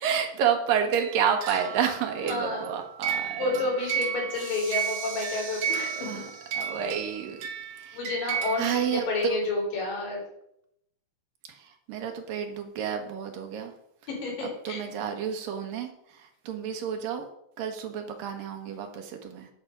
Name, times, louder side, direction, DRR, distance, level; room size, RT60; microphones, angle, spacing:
voice 1, 0.0-3.6 6.0-6.3 6.5-7.4 7.8-8.0 8.6-9.4 11.9-13.7 14.6-15.9 16.5-17.3 17.6-19.5, right 8 dB, 85° right, 4 dB, 3.1 m, -29 dB
sound 1, 0.7-9.0, right 7 dB, 65° right, 1.8 m, -34 dB
voice 2, 2.2-2.7 3.0-5.9 7.9-10.2 14.1-14.8, left 2 dB, 85° left, -2 dB, 5.7 m, -30 dB
sound 2, 4.3-6.9, right 2 dB, 35° right, 5.0 m, -42 dB
11.0 x 7.2 x 5.3 m, 0.76 s
omnidirectional pair, 3.9 m